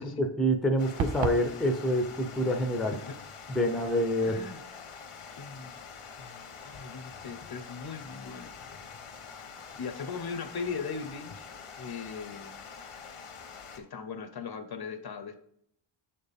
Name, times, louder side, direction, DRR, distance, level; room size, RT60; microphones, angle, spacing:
voice 1, 0.0-3.0 3.5-4.4, equal, ahead, 4 dB, 0.5 m, -27 dB
Water, 0.8-13.8, left 6 dB, 85° left, 1.1 m, -46 dB
sound 1, 1.0-1.5, right 7 dB, 65° right, 0.6 m, -30 dB
voice 2, 2.5-3.2 4.2-4.6 5.4-5.8 6.2-8.5 9.8-11.5 11.8-12.6 13.7-15.4, left 5 dB, 50° left, 8 dB, 0.6 m, -39 dB
7.4 x 4.3 x 3.5 m, 0.70 s
wide cardioid pair, 175°, 50 cm